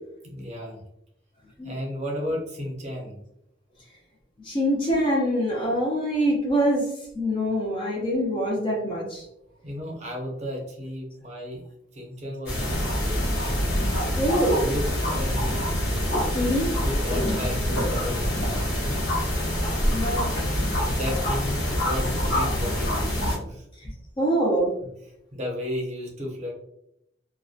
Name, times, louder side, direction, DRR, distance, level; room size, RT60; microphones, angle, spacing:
voice 1, 0.2-0.8 1.6-3.2 9.6-11.6 11.9-13.4 14.6-15.7 16.4-16.5 16.8-19.0 20.8-23.1 23.5-23.7 25.3-26.5, left 1 dB, 35° right, -1 dB, 0.6 m, -33 dB
voice 2, 4.4-6.9 7.1-9.3 14.2-14.7 16.3-16.7 19.9-20.6 23.8-24.7, equal, 25° left, -1 dB, 0.4 m, -24 dB
sound 1, 12.5-23.4, equal, 65° left, 1.0 m, -25 dB
2.6 x 2.1 x 2.3 m, 0.78 s
head